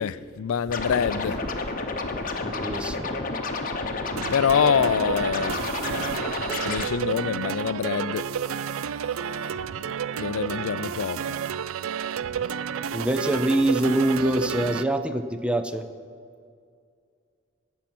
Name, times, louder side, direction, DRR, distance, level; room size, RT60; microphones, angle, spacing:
voice 1, 0.0-1.4 4.3-5.6 6.6-8.2 10.2-11.2, left 7 dB, 80° left, 16 dB, 0.4 m, -25 dB
Scratching (performance technique), 0.7-6.9, left 3 dB, 40° left, 1.0 m, -30 dB
voice 2, 2.5-3.1 12.9-15.9, right 1 dB, 5° right, 9 dB, 0.5 m, -24 dB
sound 1, 4.2-14.8, right 7 dB, 75° right, 0.4 m, -31 dB
18.5 x 7.1 x 6.0 m, 2.3 s
head